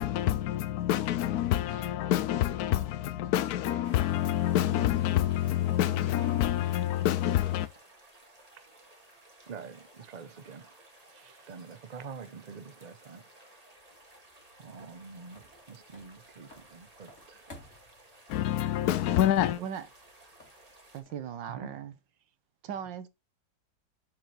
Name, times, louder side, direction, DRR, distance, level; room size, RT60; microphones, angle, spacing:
voice 1, 0.0-7.7 18.3-19.6, left 12 dB, 70° left, 0.9 m, -27 dB
sound 1, 3.8-21.0, right 1 dB, 20° right, 2.1 m, -56 dB
voice 2, 9.5-10.7 11.1-13.2 14.6-17.5 21.5-21.7, right 5 dB, 55° right, 0.4 m, -46 dB
sound 2, 13.8-21.5, left 2 dB, 40° left, 2.8 m, -58 dB
voice 3, 20.9-22.0 22.6-23.1, right 8 dB, 75° right, 1.7 m, -38 dB
7.6 x 5.7 x 4.4 m
omnidirectional pair, 2.0 m